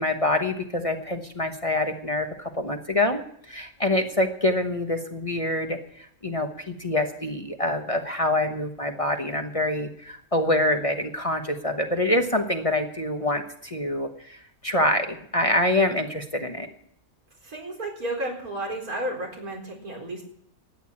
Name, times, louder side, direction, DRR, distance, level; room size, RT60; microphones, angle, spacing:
voice 1, 0.0-16.7, left 1 dB, 25° left, 5 dB, 1.1 m, -26 dB
voice 2, 17.4-20.2, right 1 dB, 90° right, 0 dB, 4.6 m, -32 dB
13.5 x 9.3 x 8.8 m, 0.66 s
omnidirectional pair, 1.5 m